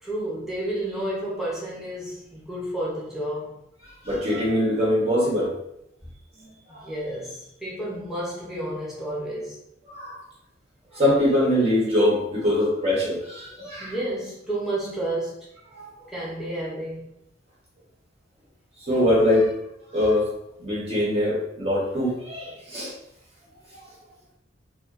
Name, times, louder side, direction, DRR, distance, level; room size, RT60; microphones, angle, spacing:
voice 1, 0.0-3.6 6.7-9.6 13.8-15.5 16.1-17.0, right 1 dB, ahead, -6 dB, 0.7 m, -31 dB
voice 2, 4.0-5.5 6.4-6.8 9.9-10.2 10.9-13.9 15.7-15.9 18.9-19.5 19.9-20.3 20.6-22.9, left 1 dB, 30° right, -7 dB, 0.8 m, -23 dB
2.4 x 2.4 x 2.3 m, 0.80 s
head